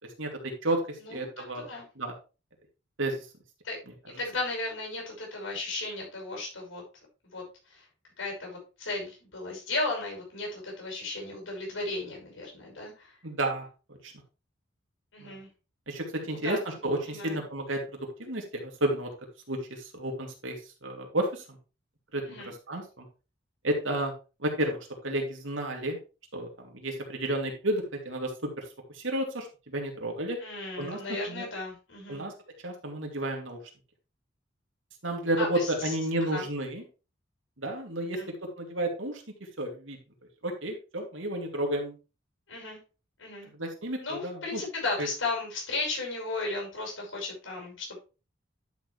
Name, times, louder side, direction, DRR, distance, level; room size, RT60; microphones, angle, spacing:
voice 1, 0.0-1.7 2.0-2.1 3.0-3.3 13.2-13.7 14.0-14.1 15.2-15.4 15.9-19.1 19.5-21.4 22.1-23.1 23.6-24.1 24.4-24.8 25.0-26.0 26.3-30.4 30.8-31.0 31.3-31.4 32.1-32.3 32.6-33.6 35.0-36.8 37.6-38.2 38.5-39.2 39.6-40.0 40.4-41.9 43.5-44.6 45.0-45.1, right 1 dB, 75° right, 2 dB, 2.8 m, -31 dB
voice 2, 1.0-1.8 3.6-3.8 4.2-6.8 7.2-7.8 8.2-13.1 15.1-15.5 16.2-16.6 17.0-17.4 22.2-22.5 30.4-32.2 35.4-35.9 36.3-36.4 38.0-38.3 42.5-42.8 43.2-43.5 44.0-48.0, left 3 dB, 75° left, -1 dB, 5.9 m, -35 dB
11.5 x 6.7 x 3.3 m, 0.32 s
head